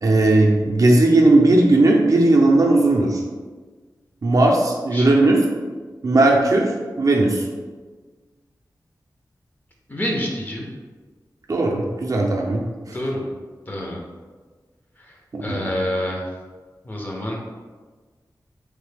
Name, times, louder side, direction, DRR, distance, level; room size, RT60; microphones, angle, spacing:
voice 1, 0.0-3.2 4.2-5.4 6.0-6.7 7.0-7.4 11.5-12.6 15.3-15.6, right 2 dB, 50° right, -1 dB, 0.4 m, -16 dB
voice 2, 4.9-5.3 9.9-10.7 12.9-13.3 13.7-14.0 15.1-15.2 15.4-16.2 16.8-17.4, left 1 dB, 25° left, -1 dB, 0.6 m, -27 dB
3.2 x 2.1 x 3.2 m, 1.4 s
wide cardioid pair, 95°, 7 cm